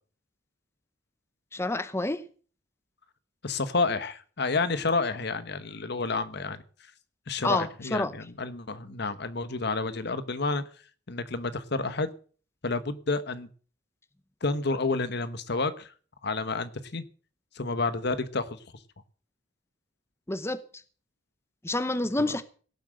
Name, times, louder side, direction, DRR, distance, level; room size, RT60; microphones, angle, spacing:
voice 1, 1.5-2.2 7.4-8.1 20.3-20.6 21.6-22.4, left 2 dB, 15° left, 0.8 m, -28 dB
voice 2, 3.4-6.6 7.3-10.6 11.1-12.1 12.6-13.5 14.4-15.9 16.2-17.0 17.6-18.6 22.2-22.3, left 3 dB, 60° left, 1.2 m, -30 dB
17.0 x 7.6 x 7.6 m
head